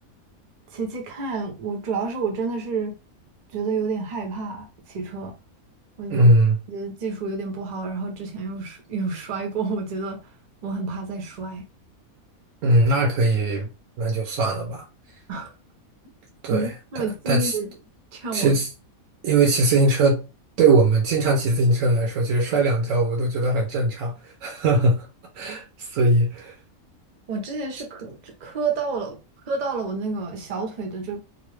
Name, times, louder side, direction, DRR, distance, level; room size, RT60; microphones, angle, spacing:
voice 1, 0.7-2.9 3.5-5.4 6.0-6.3 6.7-10.2 10.6-11.6 15.3-15.5 16.5-17.7 18.1-18.6 27.3-29.2 29.5-31.2, right 4 dB, 45° right, 0.6 m, -29 dB
voice 2, 6.1-6.6 12.6-13.7 14.0-14.8 16.4-17.6 18.3-18.7 19.2-20.3 20.6-25.1 25.3-26.5, right 2 dB, 65° right, 0.9 m, -20 dB
2.9 x 2.0 x 3.1 m
omnidirectional pair, 1.5 m